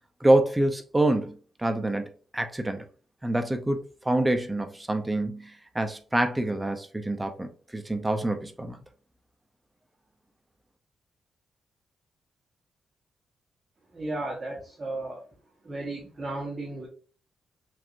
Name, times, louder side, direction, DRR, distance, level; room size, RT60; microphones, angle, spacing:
voice 1, 0.2-2.9 3.2-8.8, right 1 dB, 10° right, 0.6 m, -26 dB
voice 2, 13.9-15.2 15.6-16.9, right 2 dB, 25° right, 1.3 m, -34 dB
6.0 x 2.6 x 2.6 m
wide cardioid pair, 140°, 0 cm